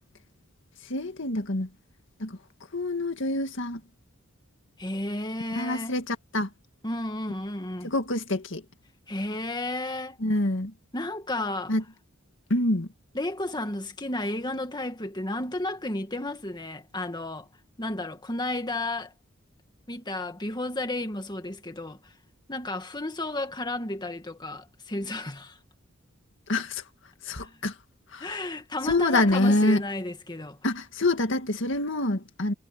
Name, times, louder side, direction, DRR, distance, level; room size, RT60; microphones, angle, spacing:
voice 1, 0.9-1.7 2.2-2.4 2.7-3.8 5.6-6.5 7.8-8.6 10.2-10.7 11.7-11.8 12.5-12.9 26.5-26.8 27.2-27.7 28.1-28.3 28.8-29.8 30.6-32.5, left 2 dB, 65° left, 2.0 m, -26 dB
voice 2, 4.8-6.0 6.8-7.9 9.1-10.2 10.9-11.7 13.1-17.5 17.8-19.1 19.9-22.1 22.5-25.6 27.4-27.6 28.2-30.6, left 1 dB, 20° left, 2.0 m, -32 dB
head